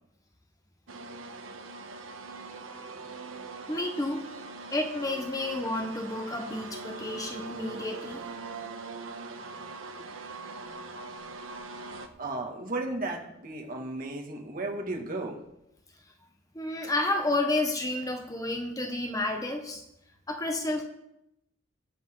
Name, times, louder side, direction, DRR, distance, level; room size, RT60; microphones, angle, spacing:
sound 1, 0.9-12.1, right 3 dB, 70° right, 1.3 m, -42 dB
voice 1, 3.7-4.2 4.7-8.2 16.5-19.8 20.3-20.8, left 2 dB, 15° left, 4 dB, 1.1 m, -30 dB
voice 2, 12.2-15.4, right 2 dB, 45° right, 0 dB, 2.3 m, -34 dB
20.5 x 7.6 x 3.9 m, 0.85 s
head